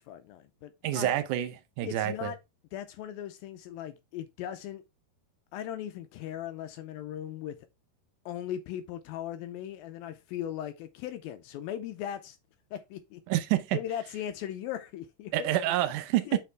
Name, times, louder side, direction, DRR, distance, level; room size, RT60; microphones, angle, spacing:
voice 1, 0.0-1.1 1.8-2.4 2.7-4.8 5.5-7.6 8.3-12.4 12.7-13.2 13.7-15.8 16.3-16.4, left 10 dB, 80° left, 2.1 m, -38 dB
voice 2, 0.8-2.3 13.3-13.8 15.3-16.3, right 13 dB, 85° right, 1.8 m, -28 dB
6.7 x 5.9 x 3.3 m
omnidirectional pair, 4.7 m